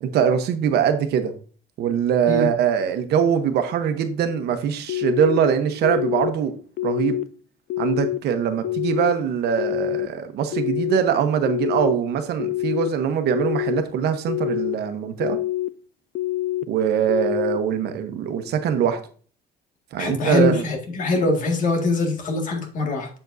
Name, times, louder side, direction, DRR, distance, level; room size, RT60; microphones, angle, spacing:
voice 1, 0.0-1.3 1.8-6.5 6.8-7.2 7.8-15.4 16.7-19.0 19.9-20.6, right 8 dB, 70° right, 8 dB, 1.0 m, -22 dB
sound 1, 4.9-5.4 5.8-6.3 6.8-7.2 7.7-8.2 8.6-9.1 9.6-10.1 10.5-11.0 11.4-11.9 12.4-12.9 13.3-13.8 14.3-14.7 15.2-15.7 16.1-16.6 17.1-17.6, left 15 dB, 70° left, 0.5 m, -26 dB
voice 2, 20.0-23.1, left 3 dB, 50° left, 2 dB, 2.0 m, -23 dB
7.6 x 7.2 x 2.7 m, 0.42 s
cardioid pair, 140°, 17 cm